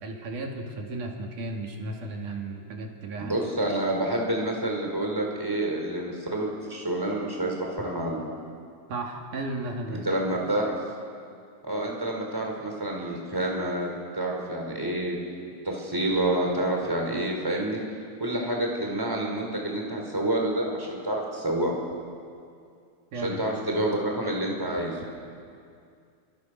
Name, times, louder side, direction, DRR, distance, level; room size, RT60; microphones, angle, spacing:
voice 1, 0.0-3.4 8.9-10.0 23.1-23.4, right 2 dB, 80° right, 1 dB, 4.1 m, -34 dB
voice 2, 3.2-8.2 10.0-10.7 11.6-15.2 15.6-17.8 18.2-21.8 23.2-25.0, right 1 dB, 5° right, 0 dB, 4.5 m, -28 dB
29.5 x 26.5 x 6.6 m, 2.4 s
omnidirectional pair, 3.5 m